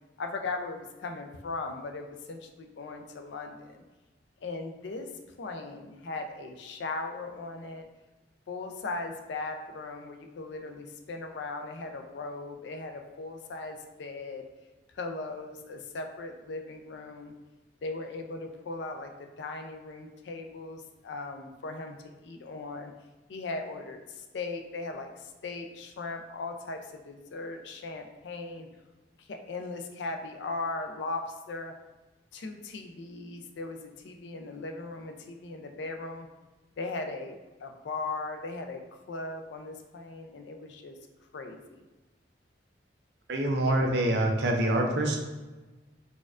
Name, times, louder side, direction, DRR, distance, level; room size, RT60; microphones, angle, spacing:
voice 1, 0.2-3.8 4.4-5.1 5.4-7.9 8.5-14.4 14.9-17.3 17.8-22.9 23.3-28.7 29.2-31.7 32.3-36.3 36.8-38.8 39.1-41.0 41.3-41.9 43.6-43.7, left 3 dB, 70° left, 5 dB, 0.4 m, -38 dB
voice 2, 43.3-45.2, right 1 dB, 65° right, 2 dB, 0.5 m, -25 dB
4.2 x 2.3 x 2.4 m, 1.2 s
head